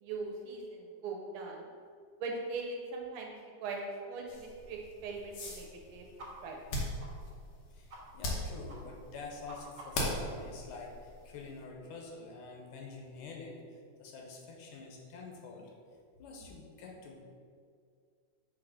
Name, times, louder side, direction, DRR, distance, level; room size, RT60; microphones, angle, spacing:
voice 1, 0.0-1.7 2.2-3.3 3.6-3.8 4.0-5.6 5.9-6.0 6.4-6.6, right 4 dB, 75° right, 0 dB, 1.8 m, -40 dB
sound 1, 4.3-11.6, left 1 dB, 65° left, 1.7 m, -40 dB
sound 2, 6.2-6.3 6.6-6.7 7.0-7.1 7.5-7.6 7.9-8.0 8.3-8.4 8.7-8.8 9.1-10.1, right 1 dB, 40° right, 1.7 m, -50 dB
voice 2, 7.7-15.7 16.2-17.2, left 4 dB, 85° left, 0 dB, 2.2 m, -47 dB
6.3 x 2.8 x 5.5 m, 2.1 s
omnidirectional pair, 3.4 m